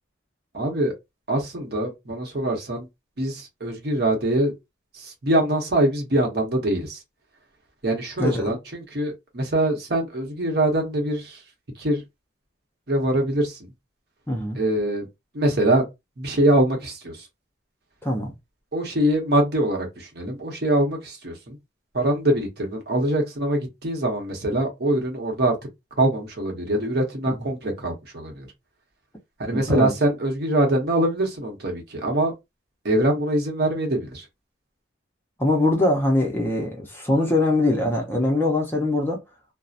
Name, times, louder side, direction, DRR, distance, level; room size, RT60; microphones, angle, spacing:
voice 1, 0.5-0.9 1.3-2.9 3.2-4.5 4.9-7.0 7.8-11.4 11.8-12.0 12.9-13.7 14.5-15.1 15.3-15.8 16.2-17.3 18.7-21.6 21.9-25.6 26.0-28.5 29.4-32.3 32.8-34.3, right 1 dB, 55° right, 0.9 m, -23 dB
voice 2, 14.3-14.6 18.0-18.3 27.3-27.4 29.5-29.9 35.4-39.2, left 2 dB, 10° left, 0.6 m, -22 dB
2.7 x 2.0 x 2.4 m
head